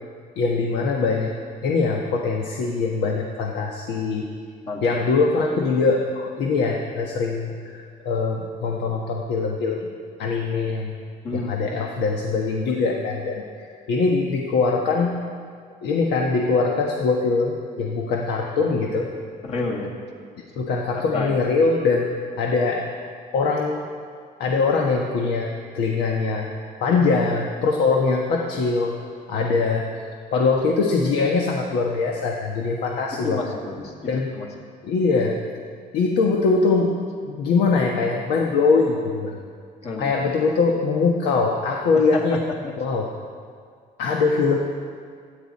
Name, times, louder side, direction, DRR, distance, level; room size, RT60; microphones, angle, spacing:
voice 1, 0.4-1.3 1.6-4.3 4.8-9.9 10.2-10.9 11.3-13.4 13.9-15.2 15.8-19.1 20.6-22.9 23.3-23.9 24.4-25.5 25.7-26.5 26.8-28.9 29.3-29.9 30.3-33.4 34.1-34.3 34.8-35.4 35.9-36.9 37.3-39.4 40.0-42.4 42.8-43.1 44.0-44.6, left 4 dB, 80° left, 1 dB, 1.4 m, -22 dB
voice 2, 4.7-5.0 11.2-11.5 19.4-20.0 20.9-21.4 26.9-27.0 33.1-34.5 39.8-40.2 41.9-42.8, left 3 dB, 40° left, -1 dB, 2.3 m, -30 dB
27.5 x 10.5 x 4.2 m, 2.1 s
cardioid pair, 165°, 17 cm